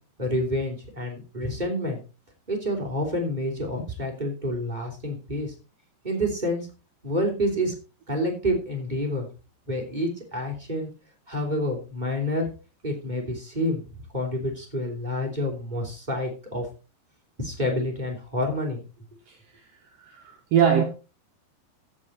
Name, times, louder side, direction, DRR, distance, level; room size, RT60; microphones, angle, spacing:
voice 1, 0.2-2.0 2.5-5.5 6.0-6.7 7.0-7.7 8.1-9.3 9.7-10.9 11.3-12.5 12.8-13.8 14.1-16.6 17.4-18.8, left 1 dB, 15° right, 2.5 m, -28 dB
voice 2, 20.0-20.8, right 8 dB, 65° right, 2.8 m, -22 dB
15.0 x 6.2 x 4.3 m
omnidirectional pair, 4.7 m